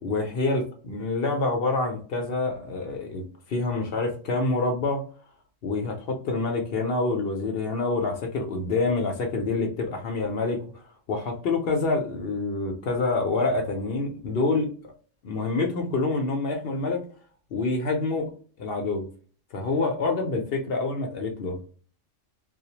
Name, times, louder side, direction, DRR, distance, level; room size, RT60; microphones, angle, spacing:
voice 1, 0.0-5.0 5.6-10.8 11.1-14.7 15.2-17.0 17.5-18.3 18.6-19.1 19.5-21.6, left 3 dB, 60° left, 3 dB, 0.7 m, -27 dB
2.2 x 2.0 x 2.8 m, 0.41 s
omnidirectional pair, 1.3 m